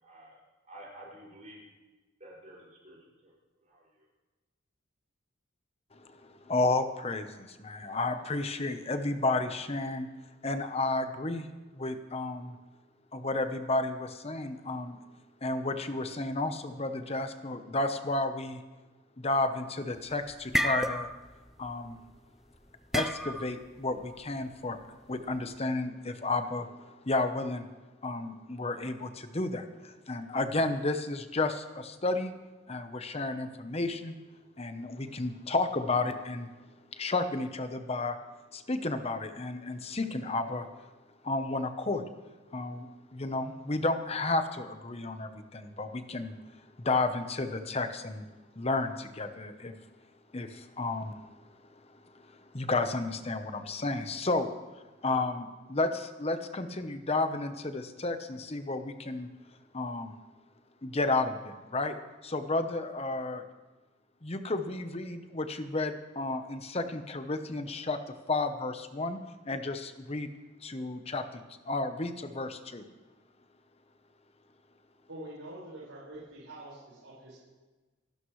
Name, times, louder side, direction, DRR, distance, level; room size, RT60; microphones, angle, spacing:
voice 1, 0.0-1.6 2.2-3.0 3.2-3.3 3.7-3.8, right 1 dB, 35° right, -5 dB, 6.0 m, -50 dB
voice 2, 5.9-10.1 10.4-11.5 11.7-12.5 13.1-15.0 15.4-18.6 19.2-21.1 21.6-22.0 22.9-24.8 25.1-27.7 28.0-32.3 32.7-34.2 34.6-36.5 36.9-38.2 38.5-40.7 41.2-42.0 42.5-46.4 46.8-48.3 48.6-49.7 50.3-51.1 52.1-54.5 55.0-59.3 59.7-60.1 60.8-62.0 62.2-63.4 64.2-68.0 68.3-69.2 69.5-70.3 70.6-71.4 71.7-72.8, left 2 dB, 30° left, 8 dB, 0.9 m, -32 dB
sound 1, 20.0-21.9 22.9-23.6, equal, ahead, 0.3 m, -31 dB
voice 3, 75.1-77.4, right 1 dB, 85° right, -8 dB, 5.3 m, -45 dB
26.5 x 12.0 x 3.2 m, 1.3 s
head